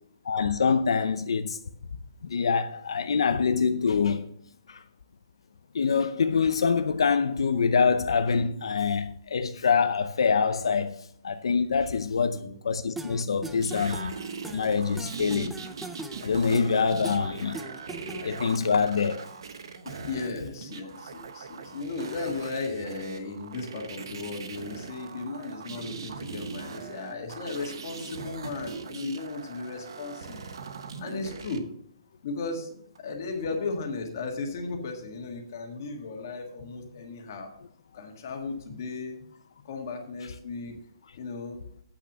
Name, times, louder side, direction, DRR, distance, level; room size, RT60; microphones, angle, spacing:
voice 1, 0.2-1.6 2.2-4.3 4.7-4.8 5.7-14.2 14.5-15.5 16.2-17.6 17.9-19.3, left 5 dB, 90° left, 0.6 m, -25 dB
voice 2, 12.1-12.5 20.1-30.4 31.0-31.6 32.2-32.7 33.0-37.5 37.9-39.2 39.6-40.8 41.2-41.6, left 3 dB, 40° left, 1.8 m, -35 dB
sound 1, 13.0-18.5, right 2 dB, 5° right, 0.4 m, -41 dB
sound 2, 13.6-31.6 33.0-33.1, right 5 dB, 60° right, 1.0 m, -41 dB
8.4 x 5.9 x 7.3 m
hypercardioid pair, 175°, 3 cm